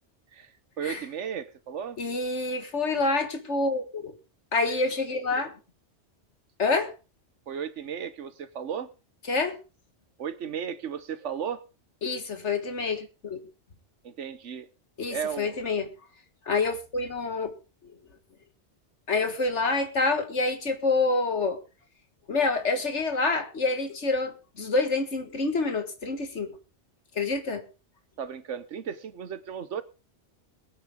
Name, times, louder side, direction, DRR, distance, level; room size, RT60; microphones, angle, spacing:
voice 1, 0.3-2.0 7.5-8.9 10.2-11.6 14.0-14.7 15.1-15.5 28.2-29.8, right 8 dB, 85° right, 1.3 m, -35 dB
voice 2, 2.0-4.1 4.5-5.5 6.6-6.9 9.3-9.6 12.0-13.4 15.0-15.9 16.5-17.5 17.8-18.0 19.1-21.6 22.3-26.6 27.2-27.6, left 3 dB, 75° left, 2.1 m, -27 dB
22.0 x 9.1 x 3.7 m
omnidirectional pair, 1.2 m